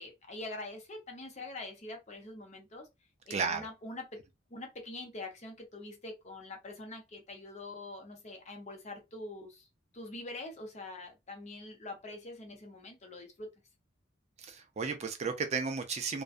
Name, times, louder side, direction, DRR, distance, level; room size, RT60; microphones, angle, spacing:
voice 1, 0.0-2.9 3.3-4.2 4.5-9.7 9.9-13.5, left 2 dB, 35° left, 0.6 m, -44 dB
voice 2, 3.3-3.7 14.4-16.2, right 5 dB, 35° right, 0.4 m, -33 dB
2.5 x 2.2 x 2.3 m
head